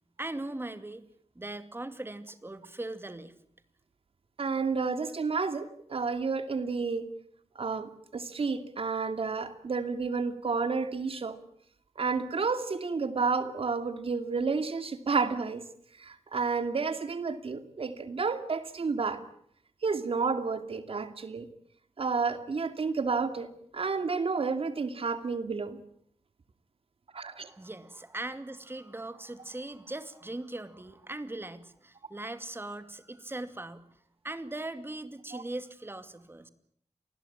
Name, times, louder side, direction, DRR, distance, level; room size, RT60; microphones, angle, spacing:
voice 1, 0.2-1.0 1.4-3.3 27.3-33.8 34.2-36.5, right 2 dB, 20° right, 11 dB, 2.4 m, -40 dB
voice 2, 4.4-7.1 7.6-11.4 12.0-15.6 16.0-19.2 19.8-21.5 22.0-25.8 27.1-27.5 35.3-35.4, right 4 dB, 55° right, 10 dB, 2.6 m, -31 dB
28.5 x 20.5 x 8.8 m, 0.66 s
wide cardioid pair, 120°, 11 cm